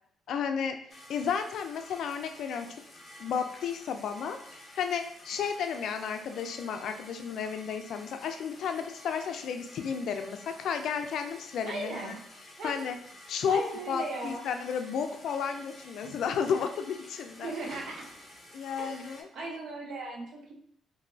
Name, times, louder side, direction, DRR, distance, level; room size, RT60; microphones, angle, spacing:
voice 1, 0.3-0.8 1.1-2.7 3.2-4.4 4.8-12.2 12.6-13.0 13.3-17.5 18.5-19.3, left 7 dB, 70° left, 7 dB, 0.3 m, -32 dB
sound 1, 0.9-19.2, left 1 dB, 30° left, 0.8 m, -51 dB
voice 2, 11.7-12.1 12.6-12.8 13.5-14.4 17.4-18.1 18.8-20.5, right 2 dB, 70° right, -1 dB, 0.8 m, -37 dB
2.9 x 2.6 x 2.6 m, 0.66 s
cardioid pair, 90°, 0 cm